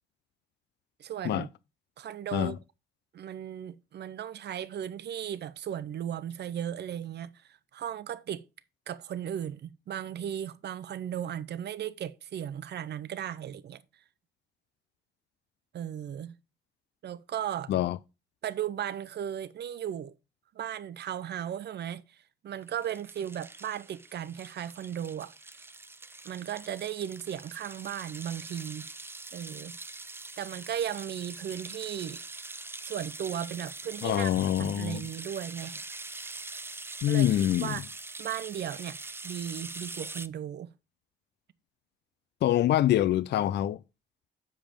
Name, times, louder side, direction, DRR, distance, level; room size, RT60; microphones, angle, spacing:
voice 1, 1.0-1.5 2.0-2.6 3.1-8.4 8.9-13.8 15.7-16.3 17.0-17.7 18.4-20.1 20.5-25.3 26.2-28.9 29.3-29.8 30.4-32.2 32.8-34.3 34.6-35.8 37.1-37.3 37.6-37.8 38.2-39.0 39.2-40.7, right 10 dB, 60° right, 0.7 m, -36 dB
sound 1, 22.7-40.3, right 3 dB, 10° right, 0.4 m, -43 dB
voice 2, 34.0-35.0 37.0-37.8 42.4-43.8, left 12 dB, 60° left, 0.4 m, -25 dB
7.3 x 5.1 x 5.1 m
cardioid pair, 90°, 20 cm